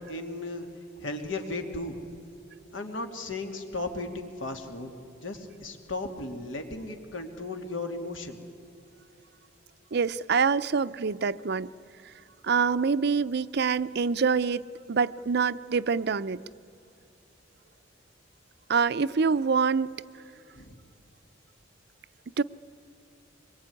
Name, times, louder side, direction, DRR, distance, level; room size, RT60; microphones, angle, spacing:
voice 1, 0.1-0.7 1.0-2.0 2.7-4.9 5.2-8.4 20.5-20.8, left 2 dB, 80° left, 4 dB, 2.9 m, -35 dB
voice 2, 9.9-11.7 12.4-16.4 18.7-19.9 22.4-22.5, right 5 dB, 55° right, 16 dB, 0.5 m, -25 dB
24.5 x 22.5 x 9.7 m, 2.6 s
head